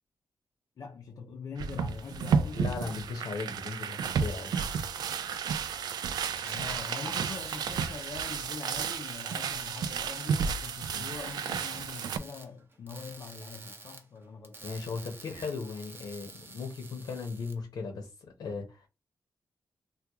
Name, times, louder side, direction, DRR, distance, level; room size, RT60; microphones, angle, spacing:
voice 1, 0.8-2.6 6.4-14.8, left 5 dB, 55° left, 0.5 m, -43 dB
sound 1, 1.6-12.2, right 6 dB, 90° right, 0.3 m, -32 dB
voice 2, 2.5-4.5 10.9-11.1 14.6-18.9, left 4 dB, 80° left, 0.8 m, -37 dB
sound 2, 6.1-17.5, right 3 dB, 35° right, 0.6 m, -50 dB
2.9 x 2.3 x 3.4 m
wide cardioid pair, 140°, 7 cm